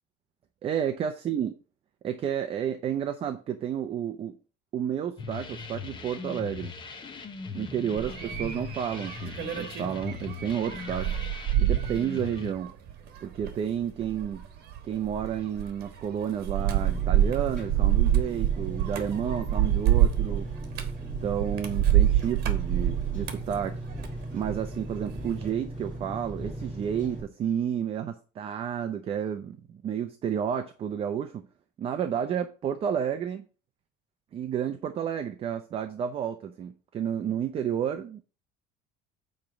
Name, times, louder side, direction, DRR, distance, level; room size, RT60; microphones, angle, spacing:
voice 1, 0.6-1.5 2.0-4.4 4.7-6.7 7.5-11.1 11.6-12.7 13.2-14.4 14.8-20.5 21.2-23.8 24.3-31.5 31.8-33.5 34.3-38.2, right 8 dB, 30° right, 0.5 m, -31 dB
sound 1, 5.2-12.5, left 5 dB, 25° left, 0.8 m, -39 dB
sound 2, 8.0-24.7 25.0-25.5, right 11 dB, 55° right, 1.3 m, -27 dB
Engine, 16.6-27.2, right 1 dB, 5° left, 3.7 m, -38 dB
8.8 x 3.2 x 5.8 m
cardioid pair, 175°, 20 cm